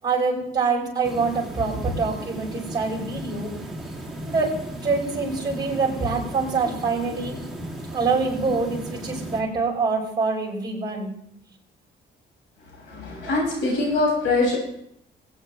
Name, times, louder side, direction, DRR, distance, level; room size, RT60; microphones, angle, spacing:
voice 1, 0.0-3.5 4.2-7.4 7.9-11.1, right 4 dB, 20° right, -3 dB, 5.8 m, -25 dB
sound 1, 1.0-9.4, right 1 dB, ahead, 2.5 m, -36 dB
voice 2, 12.9-14.6, left 2 dB, 85° left, -2 dB, 6.2 m, -23 dB
20.5 x 8.9 x 3.2 m, 0.74 s
cardioid pair, 90°, 20 cm